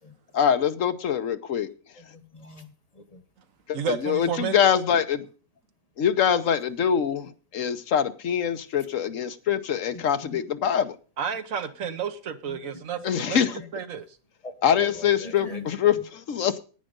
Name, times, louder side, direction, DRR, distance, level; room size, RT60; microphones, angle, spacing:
voice 1, 0.3-1.7 3.7-5.2 6.0-10.9 13.0-13.6 14.6-16.6, left 8 dB, 65° left, 1.2 m, -24 dB
voice 2, 2.0-3.2 9.9-10.0 10.3-10.4 12.5-13.1 13.4-13.7 14.4-15.7, left 2 dB, 25° left, 1.4 m, -41 dB
voice 3, 3.7-4.6 11.2-14.1, right 8 dB, 60° right, 1.4 m, -31 dB
10.5 x 9.1 x 5.1 m
omnidirectional pair, 1.6 m